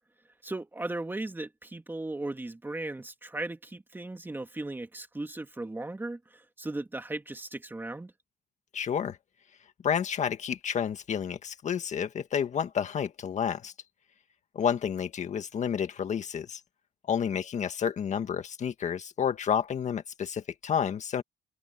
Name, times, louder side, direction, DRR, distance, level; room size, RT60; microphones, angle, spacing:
voice 1, 0.4-8.1, right 2 dB, 10° right, 2.7 m, -37 dB
voice 2, 8.7-9.2 9.8-13.7 14.6-16.6 17.1-21.2, left 8 dB, 45° left, 1.8 m, -30 dB
cardioid pair, 110°, 17 cm